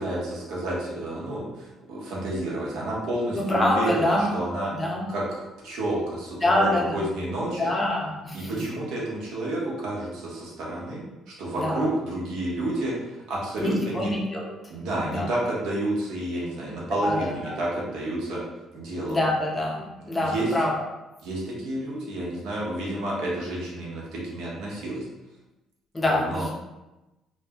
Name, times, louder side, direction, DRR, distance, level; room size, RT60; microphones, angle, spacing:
voice 1, 0.0-4.7 5.1-7.6 8.3-14.1 14.7-18.4 18.7-19.2 20.2-20.5 21.2-25.1 26.0-26.4, right 1 dB, 75° right, -4 dB, 0.9 m, -30 dB
voice 2, 3.3-4.3 4.8-5.1 6.4-7.0 7.6-8.5 11.6-11.8 13.6-14.6 15.0-15.3 17.0-17.5 19.1-20.7 25.9-26.5, left 1 dB, 15° left, -2 dB, 0.6 m, -25 dB
2.5 x 2.1 x 3.5 m, 1.0 s
cardioid pair, 160°, 0 cm